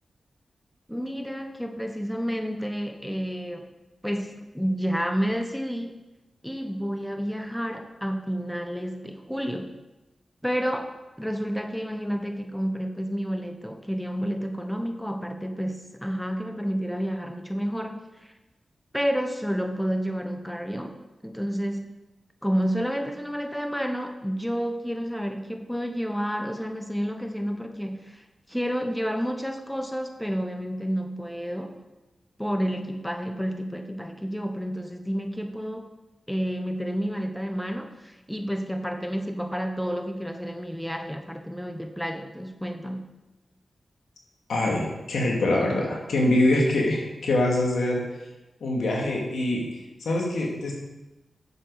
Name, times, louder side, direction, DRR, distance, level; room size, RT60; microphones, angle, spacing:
voice 1, 0.9-3.7 4.0-6.0 6.4-9.8 10.4-18.3 18.9-22.0 22.4-31.8 32.4-35.9 36.3-43.1, equal, 5° left, 5 dB, 1.1 m, -30 dB
voice 2, 44.5-48.0 48.6-50.7, left 1 dB, 85° left, -1 dB, 2.2 m, -24 dB
9.3 x 7.5 x 4.9 m, 1.0 s
cardioid pair, 45°, 0 cm